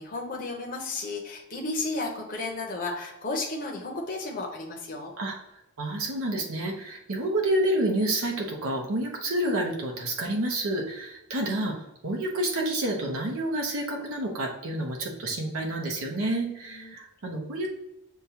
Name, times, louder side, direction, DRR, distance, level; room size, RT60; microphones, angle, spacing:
voice 1, 0.0-5.1 16.7-16.9, left 2 dB, 40° left, 0 dB, 0.6 m, -33 dB
voice 2, 5.8-17.7, right 1 dB, 75° right, 0 dB, 0.8 m, -29 dB
6.5 x 2.2 x 2.8 m, 0.87 s
head